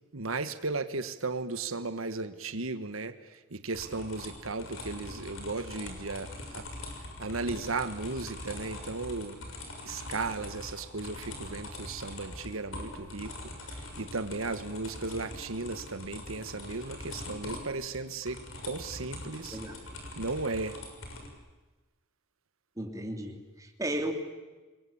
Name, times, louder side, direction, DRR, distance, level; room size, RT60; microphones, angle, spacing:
voice 1, 0.0-6.7 7.2-9.5 9.8-13.3 13.6-19.6 20.2-20.8, right 3 dB, 90° right, 10 dB, 1.4 m, -35 dB
sound 1, 3.7-21.3, left 1 dB, 75° left, 6.6 m, -43 dB
voice 2, 19.5-20.0 22.8-24.1, right 1 dB, 15° right, 3 dB, 3.2 m, -35 dB
28.5 x 22.0 x 8.7 m, 1.2 s
head